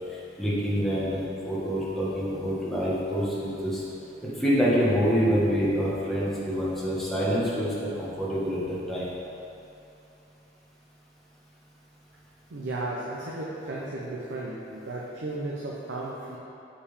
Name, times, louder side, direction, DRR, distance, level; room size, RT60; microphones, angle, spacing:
voice 1, 0.1-3.8 4.3-9.1, equal, ahead, -9 dB, 1.2 m, -26 dB
voice 2, 12.5-16.4, right 2 dB, 75° right, -4 dB, 0.7 m, -34 dB
7.3 x 5.1 x 3.3 m, 2.9 s
head